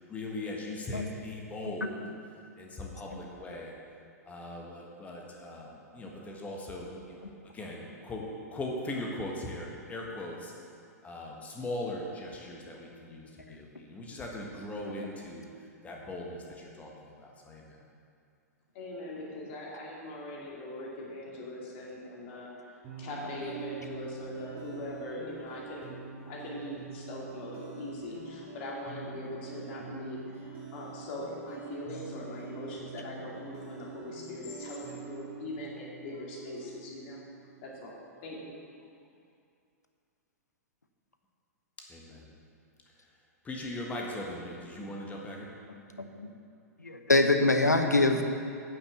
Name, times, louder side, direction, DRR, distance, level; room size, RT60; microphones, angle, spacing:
voice 1, 0.1-2.0 2.6-3.7 4.2-10.5 11.0-17.8 41.9-42.3 42.9-43.1 43.4-45.5, left 1 dB, 15° left, -1 dB, 1.5 m, -40 dB
voice 2, 18.7-26.0 26.2-37.2 37.6-38.5, left 1 dB, 45° left, -3 dB, 2.8 m, -41 dB
sound 1, 22.8-37.9, right 5 dB, 30° right, 2.4 m, -45 dB
voice 3, 46.0-46.3 46.8-48.2, left 2 dB, 85° left, 6 dB, 0.9 m, -25 dB
9.4 x 7.0 x 7.3 m, 2.4 s
figure-of-eight pair, 105°, 9 cm